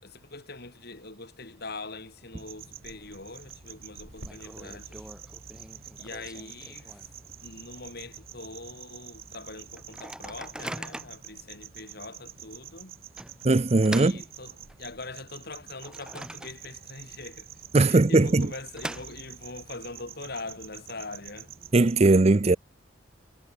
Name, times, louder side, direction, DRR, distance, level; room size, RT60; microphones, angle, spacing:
voice 1, 0.0-5.1 6.0-7.1 7.4-13.0 13.9-17.5 17.8-21.5, left 3 dB, 55° left, 6.9 m, -42 dB
sound 1, 2.4-22.0, right 9 dB, 50° right, 2.3 m, -47 dB
Microwave oven, 3.0-3.5 3.8-3.9 4.2-7.3 7.7-7.8 8.1-8.4 8.9-9.0 9.8-11.3 11.9-12.0 13.2-15.0 15.4-16.9 17.2-17.3 18.2-19.6, right 1 dB, 5° right, 1.8 m, -42 dB
Water tap faucet / Sink (filling or washing), 4.1-13.1, right 1 dB, 70° right, 6.4 m, -56 dB
voice 2, 13.4-14.1 17.7-18.5 21.7-22.6, right 2 dB, 35° right, 0.6 m, -19 dB
head